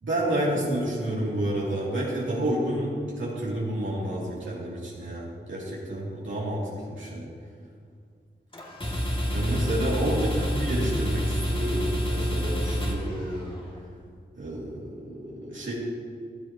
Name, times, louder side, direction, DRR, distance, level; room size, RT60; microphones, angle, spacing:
voice 1, 0.0-7.3 9.3-13.5 14.3-15.7, right 1 dB, 90° right, -7 dB, 2.7 m, -30 dB
sound 1, 8.5-13.7, equal, 25° left, 2.2 m, -28 dB
14.5 x 12.5 x 2.9 m, 2.1 s
wide cardioid pair, 65°, 19 cm